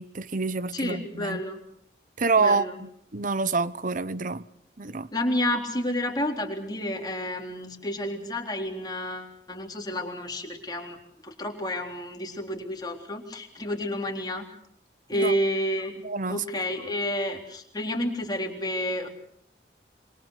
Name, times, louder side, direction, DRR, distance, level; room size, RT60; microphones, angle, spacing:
voice 1, 0.0-1.4 2.2-4.4 4.8-5.1 15.1-15.3 16.0-16.4, right 4 dB, 45° right, 0.9 m, -27 dB
voice 2, 0.7-1.6 2.4-2.8 5.1-11.0 11.2-14.4 15.1-15.9 16.3-19.1, left 1 dB, 20° left, 3.8 m, -30 dB
26.5 x 25.0 x 6.6 m
head